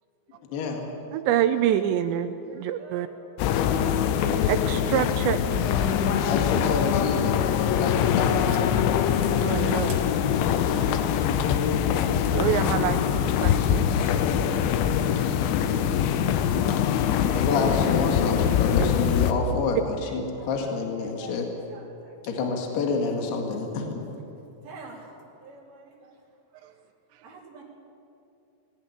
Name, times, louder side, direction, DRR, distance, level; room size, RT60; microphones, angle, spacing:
voice 1, 0.5-0.8 6.3-8.6 17.4-21.4 22.2-24.0, left 4 dB, 60° left, 2 dB, 3.7 m, -28 dB
voice 2, 1.1-3.1 4.5-5.4 6.3-6.5 9.2-9.9 12.3-14.2 18.7-18.9 26.6-26.7, right 10 dB, 80° right, 10 dB, 2.7 m, -27 dB
voice 3, 2.4-3.1 3.6-4.4 6.2-6.5 7.4-10.2 10.4-10.6 13.0-13.3 14.0-15.4 15.7-16.0 20.0-20.7 21.0-22.5 22.9-23.3 24.6-26.2 26.6-26.7 27.2-27.6, right 4 dB, 55° right, -2 dB, 4.7 m, -48 dB
sound 1, 3.4-19.3, left 8 dB, 80° left, 3.2 m, -23 dB
20.5 x 16.5 x 9.7 m, 2.8 s
omnidirectional pair, 5.6 m